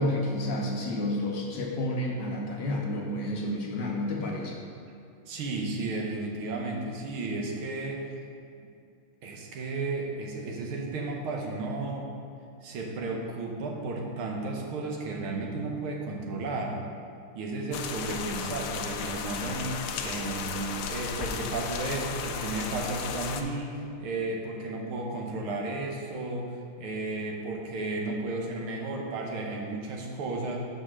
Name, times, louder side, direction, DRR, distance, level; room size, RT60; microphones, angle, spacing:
voice 1, 0.0-4.6, left 1 dB, 65° left, -1 dB, 1.3 m, -30 dB
voice 2, 5.3-8.0 9.2-12.1 12.6-16.8 17.4-26.5 26.8-30.6, right 3 dB, 80° right, 0 dB, 1.8 m, -33 dB
sound 1, 17.7-23.4, left 6 dB, 85° left, 0.8 m, -34 dB
6.2 x 5.4 x 6.1 m, 2.5 s
omnidirectional pair, 2.3 m